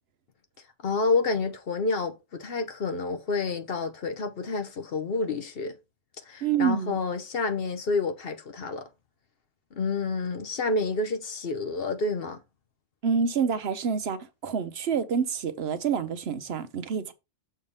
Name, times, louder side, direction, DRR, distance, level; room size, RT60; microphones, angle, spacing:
voice 1, 0.8-5.8 6.3-8.9 9.7-12.4, left 3 dB, 55° left, 0.9 m, -29 dB
voice 2, 6.4-7.0 13.0-17.1, right 6 dB, 60° right, 0.9 m, -27 dB
6.5 x 3.4 x 5.4 m
omnidirectional pair, 1.3 m